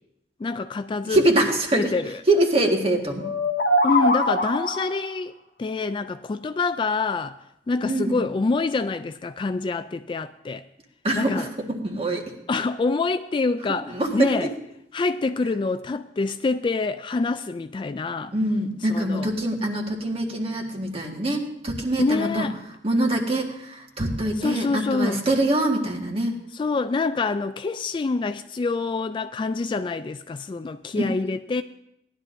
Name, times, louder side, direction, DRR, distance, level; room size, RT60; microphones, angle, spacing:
voice 1, 0.4-1.3 1.8-2.2 3.8-7.4 7.7-10.6 11.1-11.5 12.5-14.5 14.9-18.3 18.9-19.3 22.0-22.5 24.4-25.2 26.5-31.6, left 3 dB, 30° left, 0.3 m, -26 dB
voice 2, 1.1-1.9 2.3-3.3 7.8-8.2 11.0-12.3 13.9-14.5 18.3-22.5 22.8-26.3, right 1 dB, 35° right, 1.7 m, -24 dB
sound 1, 3.2-5.0, left 1 dB, 65° left, 0.8 m, -22 dB
17.5 x 11.5 x 2.6 m
head